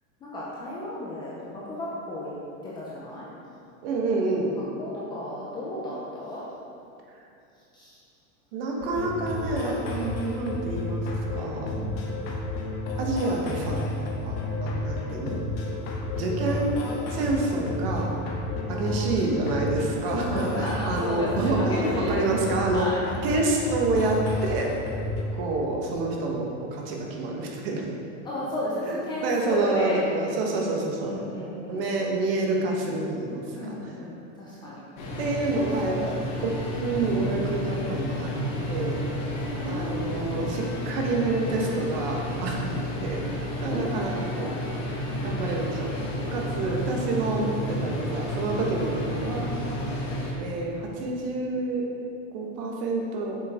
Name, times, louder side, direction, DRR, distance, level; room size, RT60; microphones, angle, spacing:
voice 1, 0.2-2.3 2.6-3.3 4.5-6.4 7.7-8.0 11.8-12.1 18.7-19.3 20.3-23.0 28.2-30.0 31.1-31.9 33.5-34.8 35.5-36.3 39.3-40.2 43.7-44.6 49.6-49.9, left 1 dB, 10° left, -7 dB, 0.5 m, -34 dB
voice 2, 3.8-4.5 8.5-11.0 11.3-11.7 13.0-14.4 14.6-15.4 16.2-16.7 17.1-18.1 18.7-22.9 23.2-24.7 25.4-27.9 28.8-31.2 31.7-33.7 35.2-38.3 38.7-39.0 39.6-43.3 43.6-44.5 45.2-45.9 46.3-49.5 50.4-51.8 52.3-53.4, right 3 dB, 45° right, 0 dB, 1.3 m, -28 dB
sound 1, 8.8-25.2, left 2 dB, 50° left, 1.3 m, -31 dB
sound 2, 35.0-50.3, left 1 dB, 30° left, 1.2 m, -31 dB
8.0 x 6.7 x 3.6 m, 2.7 s
supercardioid pair, 170°, 40 cm